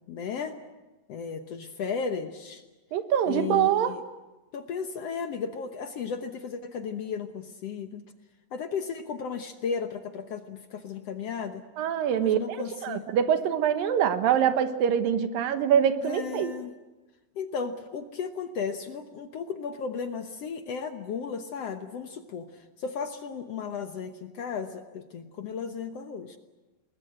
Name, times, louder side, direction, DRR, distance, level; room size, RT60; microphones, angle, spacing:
voice 1, 0.1-0.6 1.1-2.6 3.3-4.0 4.5-8.0 8.5-11.6 12.2-13.1 16.0-16.7 17.4-26.4, left 6 dB, 60° left, 7 dB, 1.7 m, -35 dB
voice 2, 2.9-3.9 11.8-12.6 12.8-16.5, right 9 dB, 85° right, 9 dB, 3.0 m, -24 dB
28.0 x 20.5 x 7.7 m, 1.1 s
omnidirectional pair, 3.9 m